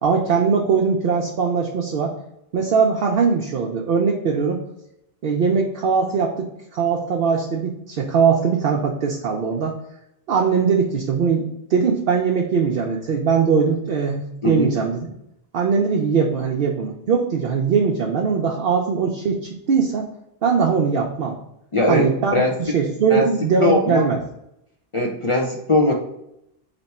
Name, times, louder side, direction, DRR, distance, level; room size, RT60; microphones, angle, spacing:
voice 1, 0.0-2.1 2.5-4.6 5.2-9.8 10.3-15.1 15.5-20.1 20.4-21.4 21.9-22.4 22.7-24.2, right 5 dB, 65° right, -1 dB, 0.8 m, -20 dB
voice 2, 21.7-22.8 23.1-23.3 23.6-24.0 24.9-25.9, left 2 dB, 35° left, -1 dB, 0.6 m, -20 dB
3.3 x 3.0 x 4.1 m, 0.80 s
omnidirectional pair, 1.1 m